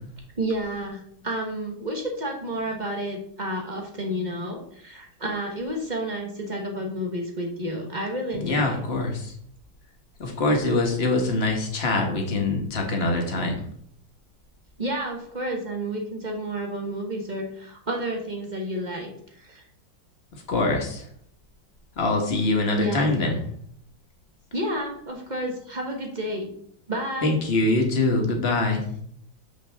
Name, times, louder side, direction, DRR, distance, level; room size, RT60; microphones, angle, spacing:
voice 1, 0.4-8.8 14.8-19.1 19.4-19.6 22.8-23.3 24.5-26.5 26.9-27.4, right 1 dB, 25° right, 1 dB, 1.2 m, -30 dB
voice 2, 8.4-9.3 10.2-13.7 20.3-21.0 22.0-23.4 27.2-28.8, left 2 dB, 35° left, 2 dB, 1.4 m, -24 dB
6.9 x 6.4 x 3.5 m, 0.66 s
omnidirectional pair, 2.1 m